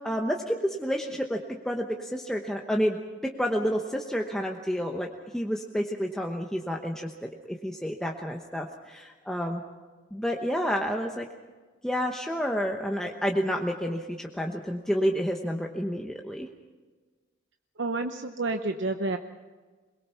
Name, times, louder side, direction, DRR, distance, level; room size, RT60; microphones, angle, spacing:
voice 1, 0.0-1.4 1.6-3.0 3.4-5.1 5.3-9.6 10.1-11.2 11.8-16.5, equal, 5° left, 1 dB, 1.0 m, -29 dB
voice 2, 17.8-19.2, right 2 dB, 65° right, 6 dB, 0.8 m, -29 dB
22.5 x 21.5 x 5.8 m, 1.3 s
head